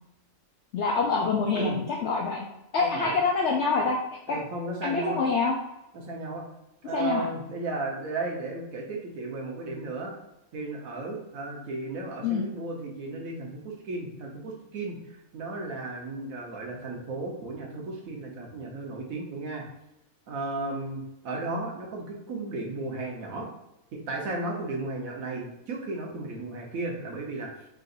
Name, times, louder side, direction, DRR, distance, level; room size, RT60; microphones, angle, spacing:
voice 1, 0.7-2.5 2.7-4.0 4.3-4.4 4.8-5.5 6.9-7.3 12.2-12.4, left 4 dB, 65° left, -1 dB, 0.7 m, -26 dB
voice 2, 2.8-3.2 4.3-5.2 5.9-6.4 6.8-10.1 10.5-19.7 20.3-23.5 23.9-27.5, right 2 dB, 75° right, 0 dB, 1.3 m, -34 dB
3.8 x 2.5 x 3.9 m, 0.89 s
omnidirectional pair, 1.4 m